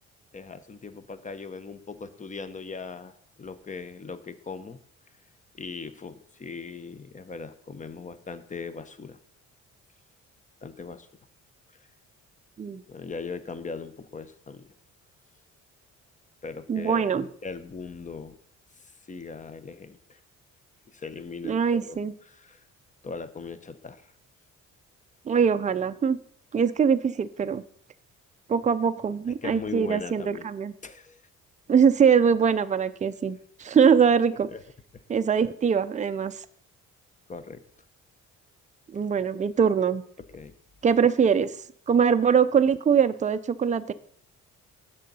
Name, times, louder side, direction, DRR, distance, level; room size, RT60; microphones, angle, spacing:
voice 1, 0.3-4.8 5.5-9.2 10.6-11.1 12.9-14.7 16.4-18.4 19.1-20.2 20.9-22.6 23.0-24.0 29.4-30.5 30.8-31.2 34.5-34.6 34.9-35.0 37.3-37.6 40.3-40.5, left 4 dB, 25° left, 12 dB, 0.8 m, -39 dB
voice 2, 16.7-17.3 21.4-22.1 25.3-26.2 26.5-27.6 28.5-30.7 31.7-34.5 35.1-36.3 38.9-40.0 40.8-41.5 41.9-43.9, right 7 dB, 25° right, 11 dB, 0.5 m, -22 dB
7.6 x 6.6 x 5.4 m, 0.62 s
cardioid pair, 90°, 30 cm